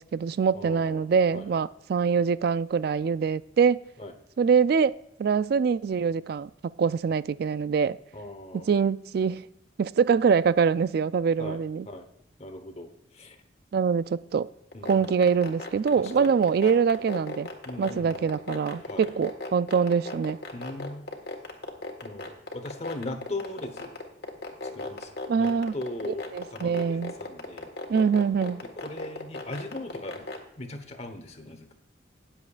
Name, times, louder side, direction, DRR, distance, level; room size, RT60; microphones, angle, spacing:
voice 1, 0.0-3.8 4.4-4.9 5.2-6.5 6.8-8.0 8.5-9.4 9.8-11.9 13.7-14.5 14.9-17.5 17.8-20.4 25.3-25.7 26.1-27.1 27.9-28.6, right 6 dB, 55° right, 0.3 m, -24 dB
voice 2, 0.5-1.1 1.3-1.6 4.0-4.1 8.1-8.7 11.4-11.6 11.8-12.0 12.4-12.9 13.1-13.4 14.7-15.1 16.0-16.3 17.6-18.1 18.8-19.1 20.5-21.0 22.0-24.0 24.7-27.7 28.8-30.3 30.6-31.7, left 2 dB, 35° left, 1.1 m, -39 dB
sound 1, 14.7-30.4, left 2 dB, 55° left, 1.6 m, -35 dB
18.5 x 7.3 x 2.5 m
head